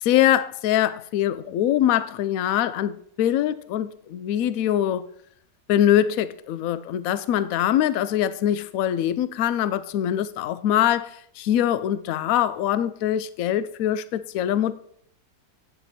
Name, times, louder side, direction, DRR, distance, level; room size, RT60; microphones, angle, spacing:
voice 1, 0.0-5.1 5.7-14.7, left 11 dB, 70° left, 0.8 m, -23 dB
9.0 x 6.9 x 4.2 m
omnidirectional pair, 1.9 m